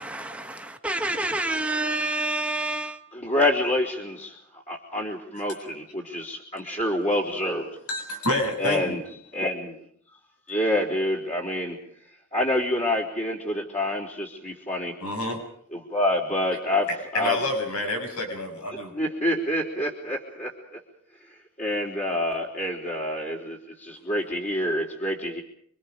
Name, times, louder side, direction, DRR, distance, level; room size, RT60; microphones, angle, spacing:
voice 1, 0.0-3.0, right 2 dB, 5° right, 1.8 m, -28 dB
voice 2, 3.1-7.7 8.6-9.0 9.3-9.8 10.5-11.8 12.3-15.0 15.7-16.9 17.1-17.4 18.9-20.8 21.3-25.4, left 1 dB, 30° left, 3.9 m, -27 dB
voice 3, 7.9-9.0 15.0-15.4 16.9-18.9, left 1 dB, 85° left, 7.2 m, -28 dB
28.0 x 25.0 x 5.2 m
head